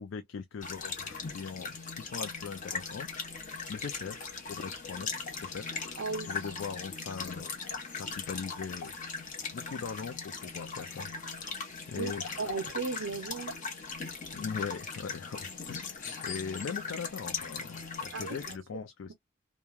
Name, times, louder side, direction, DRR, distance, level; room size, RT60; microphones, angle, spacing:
voice 1, 0.0-3.1 3.3-5.1 5.4-9.0 9.5-11.5 11.9-12.5 14.3-19.1, left 6 dB, 70° left, 0.4 m, -41 dB
sound 1, 0.6-18.6, left 5 dB, 40° left, 0.9 m, -39 dB
voice 2, 6.0-6.3 12.0-12.1 12.4-13.6 18.1-18.4, right 4 dB, 80° right, 0.5 m, -35 dB
3.1 x 2.2 x 2.3 m
head